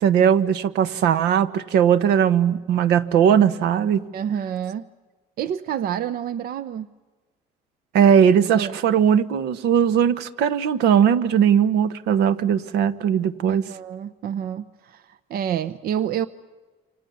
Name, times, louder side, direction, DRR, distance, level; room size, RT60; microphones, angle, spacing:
voice 1, 0.0-4.0 7.9-13.6, right 8 dB, 85° right, 13 dB, 1.3 m, -19 dB
voice 2, 4.1-4.9 5.4-6.9 8.5-8.8 13.5-16.3, right 9 dB, 65° right, 14 dB, 0.8 m, -28 dB
28.0 x 26.0 x 7.1 m, 1.3 s
cardioid pair, 110°, 17 cm